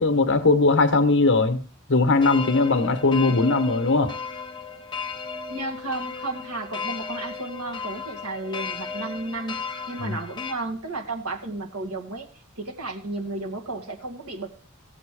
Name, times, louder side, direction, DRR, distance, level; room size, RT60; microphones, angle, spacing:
voice 1, 0.0-1.6 1.9-4.1 10.0-10.2, left 3 dB, 55° left, 1.3 m, -20 dB
sound 1, 2.2-10.5, left 5 dB, 20° left, 1.2 m, -35 dB
voice 2, 5.5-9.6 9.9-12.3 12.6-14.5, right 2 dB, 80° right, 2.2 m, -33 dB
15.5 x 8.4 x 5.0 m
head